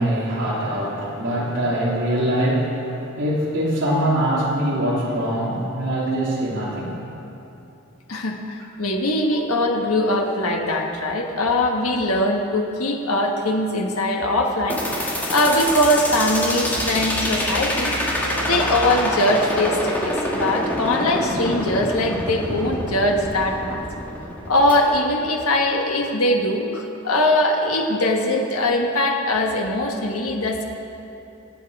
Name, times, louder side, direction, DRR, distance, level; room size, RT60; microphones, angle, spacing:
voice 1, 0.0-7.0, right 1 dB, 60° right, -7 dB, 2.9 m, -23 dB
voice 2, 8.1-17.9 18.4-23.8 24.5-30.6, left 1 dB, 85° left, 1 dB, 1.6 m, -21 dB
sound 1, 14.7-24.7, left 1 dB, 10° left, 1.9 m, -26 dB
sound 2, 16.7-19.7, right 1 dB, 45° right, 1.5 m, -33 dB
23.0 x 8.5 x 4.8 m, 2.9 s
head